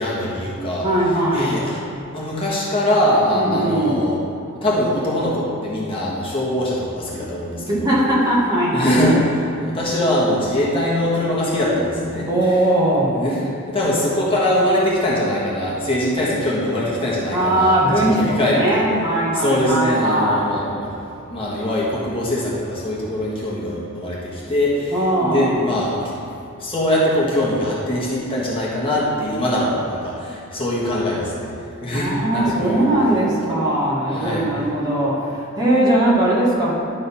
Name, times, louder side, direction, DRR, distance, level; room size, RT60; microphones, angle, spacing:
voice 1, 0.0-0.9 1.3-1.8 2.1-4.2 4.6-8.0 8.7-12.6 13.1-18.8 19.3-21.0 21.3-26.1 26.6-31.5 31.8-32.8 34.1-34.4, left 1 dB, 25° left, -7 dB, 1.5 m, -22 dB
voice 2, 0.8-1.6 3.3-4.0 7.7-8.9 12.3-13.2 17.3-20.5 24.9-25.6 31.9-36.7, right 1 dB, 20° right, -7 dB, 1.6 m, -19 dB
11.5 x 3.9 x 5.6 m, 2.5 s
head